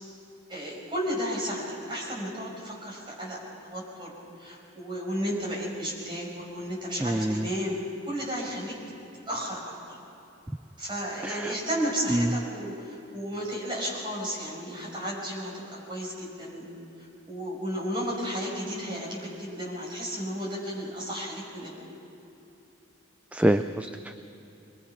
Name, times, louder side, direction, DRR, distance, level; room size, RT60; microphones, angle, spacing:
voice 1, 0.5-7.8 8.1-8.8 9.3-10.0 10.8-16.7 17.3-21.7, equal, 25° right, -4 dB, 5.7 m, -33 dB
voice 2, 7.0-7.5 11.2-11.5 12.1-12.3 23.3-24.1, right 1 dB, 5° right, 9 dB, 0.4 m, -26 dB
24.0 x 21.0 x 5.7 m, 3.0 s
head